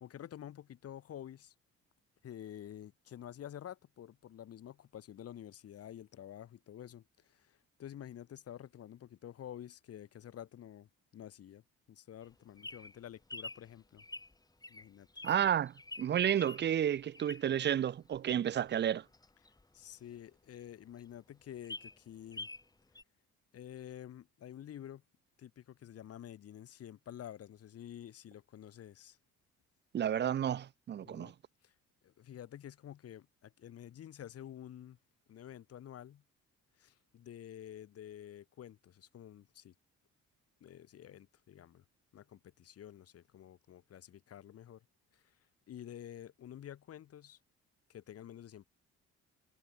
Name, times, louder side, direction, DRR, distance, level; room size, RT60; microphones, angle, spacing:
voice 1, 0.0-1.5 2.2-11.6 11.9-14.0 14.7-15.1 19.7-22.5 23.5-25.0 25.4-29.2 31.0-31.3 31.6-31.7 32.0-35.0 35.3-36.2 36.8-39.7 40.6-41.8 42.1-44.8 45.1-45.3 45.7-47.4 47.9-48.7, left 10 dB, 50° left, 0.9 m, -49 dB
Bird vocalization bird call bird song, 12.2-17.7 18.1-20.3 20.7-20.8 21.0-21.1 21.4-22.7 22.9-23.0, left 2 dB, 15° left, 1.2 m, -48 dB
voice 2, 15.2-19.0 29.9-31.3, right 10 dB, 35° right, 0.5 m, -31 dB
cardioid pair, 90°, 30 cm